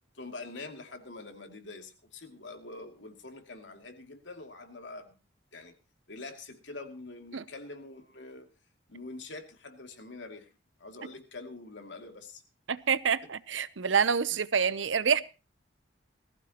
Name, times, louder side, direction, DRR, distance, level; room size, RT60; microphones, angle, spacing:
voice 1, 0.1-5.1 5.5-5.7 6.1-8.5 8.9-10.5 10.8-12.4 14.3-14.4, left 3 dB, 75° left, 2.6 m, -45 dB
voice 2, 12.7-15.2, right 6 dB, 85° right, 0.7 m, -27 dB
19.5 x 15.0 x 2.9 m
head